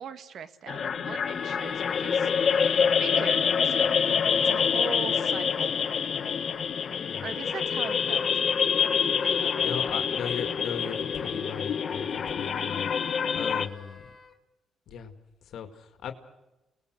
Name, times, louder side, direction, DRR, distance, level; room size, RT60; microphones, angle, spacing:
voice 1, 0.0-3.9 4.4-5.7 7.2-8.3 8.8-9.7, right 7 dB, 65° right, 11 dB, 1.7 m, -40 dB
sound 1, 0.7-13.7, left 7 dB, 50° left, 1.2 m, -26 dB
Wind instrument woodwind instrument, 1.1-14.3, left 4 dB, 30° left, 2.4 m, -48 dB
voice 2, 9.6-12.9 13.3-14.1 14.9-15.1 15.4-16.1, left 7 dB, 70° left, 7 dB, 2.2 m, -37 dB
29.0 x 19.5 x 6.6 m, 0.99 s
cardioid pair, 90°, 0 cm